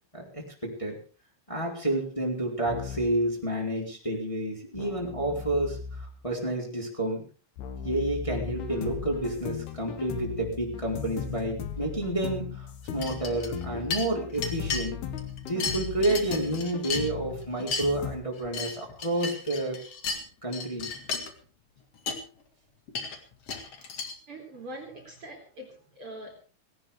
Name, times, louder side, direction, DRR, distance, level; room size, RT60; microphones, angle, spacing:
voice 1, 0.1-1.0 1.5-7.2 7.8-15.0 15.4-19.8 20.4-20.9, right 1 dB, 10° left, -2 dB, 3.7 m, -30 dB
Keyboard (musical), 2.7-3.3 4.7-6.3 7.6-14.6, left 4 dB, 70° left, 2.8 m, -42 dB
sound 1, 8.3-18.2, left 9 dB, 85° left, 3.6 m, -38 dB
sound 2, 13.0-13.6 13.9-14.8 15.2-17.3 17.6-17.8 18.3-20.2 20.5-21.3 21.8-21.9 22.1-22.2 22.9-24.1, left 4 dB, 45° left, 2.6 m, -34 dB
voice 2, 24.3-26.4, right 1 dB, 40° right, 1 dB, 3.4 m, -43 dB
18.0 x 17.5 x 3.5 m, 0.37 s
omnidirectional pair, 4.4 m